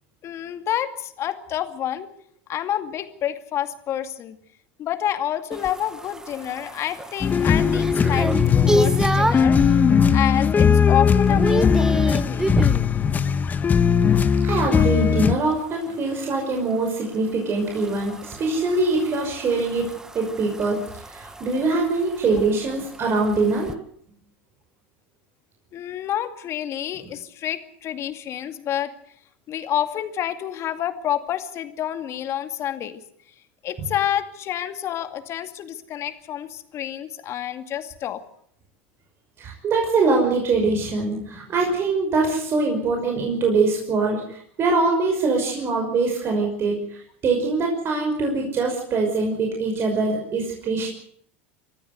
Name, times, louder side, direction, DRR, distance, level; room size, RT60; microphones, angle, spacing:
voice 1, 0.2-2.1 2.5-4.4 4.8-12.5 25.7-28.9 29.5-33.0 33.6-38.2, left 11 dB, 45° left, 9 dB, 2.4 m, -28 dB
sound 1, 5.5-9.6 10.1-10.5 10.8-12.9 15.3-23.7, right 1 dB, 10° right, 1.3 m, -29 dB
sound 2, 7.2-15.3, left 7 dB, 25° left, 1.2 m, -19 dB
voice 2, 14.0-19.9 20.1-20.8 21.1-23.7 27.0-27.1 39.4-50.9, right 3 dB, 40° right, 1 dB, 5.7 m, -23 dB
24.5 x 14.5 x 8.1 m, 0.65 s
supercardioid pair, 100°, 6 cm